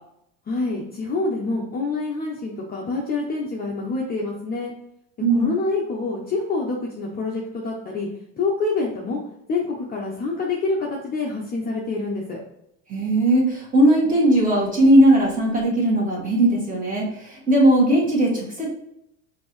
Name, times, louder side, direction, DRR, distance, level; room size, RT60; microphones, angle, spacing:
voice 1, 0.5-4.7 5.3-8.1 8.4-9.2 9.5-12.4, left 3 dB, 25° left, -2 dB, 0.6 m, -26 dB
voice 2, 12.9-18.7, right 1 dB, 20° right, -4 dB, 1.6 m, -18 dB
5.1 x 2.7 x 3.1 m, 0.78 s
supercardioid pair, 125°, 41 cm